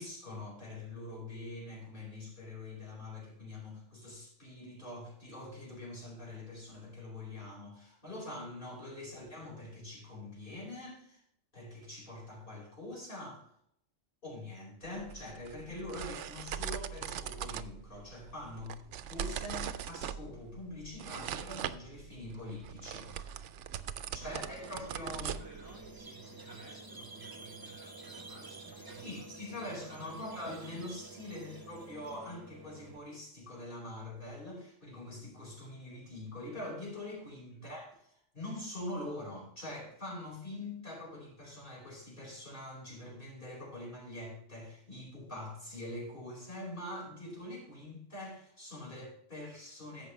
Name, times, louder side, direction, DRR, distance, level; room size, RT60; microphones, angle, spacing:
voice 1, 0.0-11.2 11.5-13.4 14.2-18.8 19.1-23.4 24.1-25.3 29.0-37.9 38.3-50.1, left 1 dB, 45° left, -4 dB, 4.6 m, -44 dB
sound 1, 14.8-26.0, right 9 dB, 80° right, 0.9 m, -41 dB
voice 2, 24.0-30.3 31.3-31.8 37.5-37.8, right 3 dB, 15° left, -6 dB, 2.6 m, -56 dB
Squeak, 24.2-33.0, right 2 dB, 20° right, 0.9 m, -50 dB
14.0 x 5.6 x 3.1 m, 0.71 s
omnidirectional pair, 1.2 m